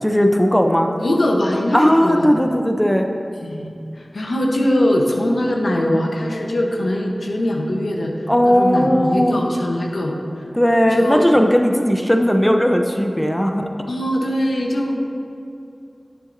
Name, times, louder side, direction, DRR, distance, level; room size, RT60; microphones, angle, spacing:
voice 1, 0.0-0.9 1.7-3.1 8.3-9.4 10.5-13.6, equal, 10° left, 4 dB, 0.5 m, -17 dB
voice 2, 1.0-2.3 3.4-8.1 8.4-10.1 10.9-11.4 13.9-14.9, left 1 dB, 85° left, 0 dB, 0.8 m, -21 dB
9.7 x 6.8 x 2.6 m, 2.6 s
wide cardioid pair, 50°, 0 cm